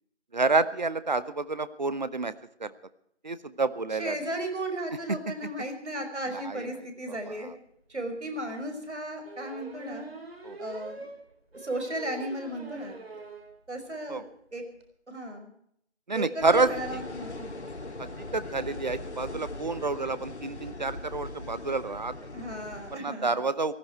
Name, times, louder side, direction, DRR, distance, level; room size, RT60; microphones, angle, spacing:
voice 1, 0.3-2.3 2.6-2.7 3.2-4.2 5.1-5.2 6.3-7.5 10.4-10.6 14.1-14.2 16.1-17.0 18.0-22.1 22.9-23.7, right 3 dB, 40° right, 15 dB, 0.9 m, -29 dB
voice 2, 4.0-7.5 7.9-10.1 10.6-11.0 11.5-13.2 13.7-14.6 15.1-15.5 16.1-17.5 22.3-23.3, right 1 dB, 75° right, 5 dB, 5.4 m, -35 dB
sound 1, 7.5-7.6 7.9-8.0 9.2-13.5 13.9-14.0 14.3-14.4 14.6-14.8, right 2 dB, 60° right, 4.0 m, -43 dB
sound 2, 16.4-22.9, left 2 dB, 70° left, 1.9 m, -40 dB
19.0 x 15.0 x 4.6 m, 0.71 s
figure-of-eight pair, 165°, 35 cm